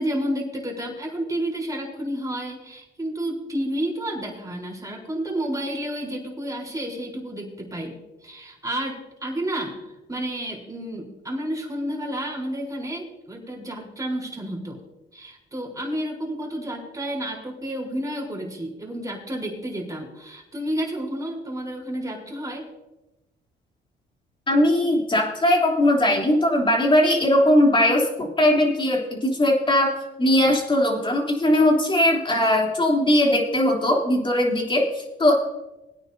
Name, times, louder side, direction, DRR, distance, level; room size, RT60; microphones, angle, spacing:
voice 1, 0.0-8.0 8.2-14.8 15.1-22.6, right 1 dB, 15° right, -2 dB, 4.0 m, -30 dB
voice 2, 24.5-35.3, left 1 dB, 25° left, -1 dB, 3.3 m, -20 dB
21.0 x 9.5 x 2.8 m, 0.99 s
cardioid pair, 90°, 20 cm